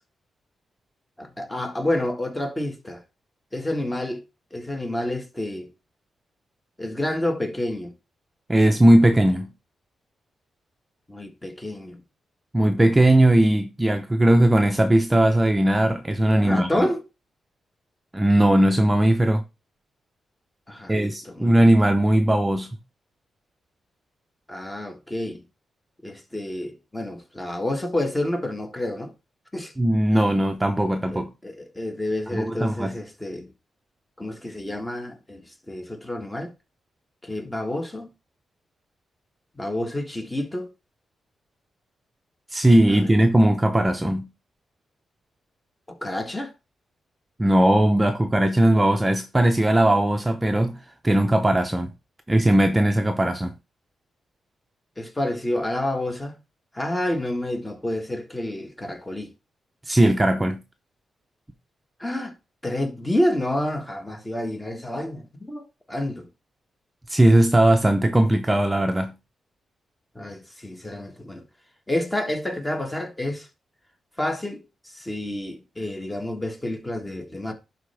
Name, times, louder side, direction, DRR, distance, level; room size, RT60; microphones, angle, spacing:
voice 1, 1.2-3.0 3.5-4.2 4.5-5.7 6.8-7.9 11.1-12.0 16.4-17.0 20.7-21.6 24.5-25.4 26.0-29.1 29.5-29.7 31.1-33.5 34.2-36.5 37.2-38.1 39.5-40.7 42.9-43.1 45.9-46.5 55.0-56.4 56.7-59.3 62.0-62.3 62.6-66.3 70.1-71.5 71.9-73.5 74.2-77.5, left 1 dB, 15° left, 1.7 m, -29 dB
voice 2, 8.5-9.5 12.5-16.9 18.1-19.4 20.9-22.7 29.8-31.3 32.3-32.9 42.5-44.3 47.4-50.8 51.0-51.9 52.3-53.5 59.9-60.6 67.1-69.1, right 1 dB, 15° right, 0.8 m, -19 dB
11.0 x 4.3 x 3.5 m
cardioid pair, 95°, 0 cm